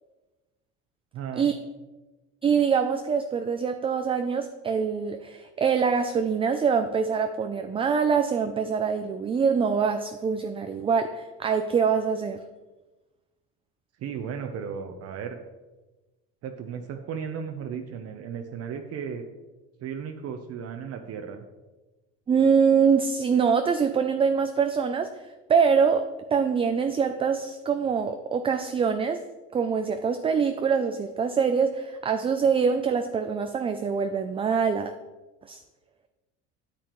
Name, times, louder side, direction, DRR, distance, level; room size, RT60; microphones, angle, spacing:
voice 1, 1.1-1.5 14.0-15.4 16.4-19.3 19.8-21.5, right 7 dB, 50° right, 5 dB, 0.8 m, -35 dB
voice 2, 2.4-12.4 22.3-26.1 26.3-29.2 29.5-34.9 35.5-35.6, right 6 dB, 15° right, 7 dB, 0.3 m, -24 dB
9.0 x 8.6 x 3.1 m, 1.2 s
cardioid pair, 125°, 33 cm